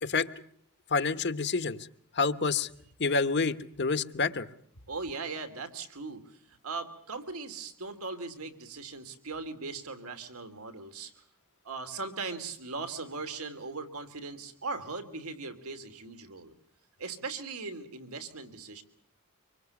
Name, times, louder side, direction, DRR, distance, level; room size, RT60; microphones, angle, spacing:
voice 1, 0.9-1.8 2.1-2.7 3.0-4.5, left 4 dB, 50° left, 10 dB, 1.1 m, -28 dB
voice 2, 4.9-11.2 11.6-16.5 17.0-18.8, right 4 dB, 90° right, 7 dB, 2.8 m, -39 dB
25.5 x 24.5 x 7.1 m, 0.64 s
head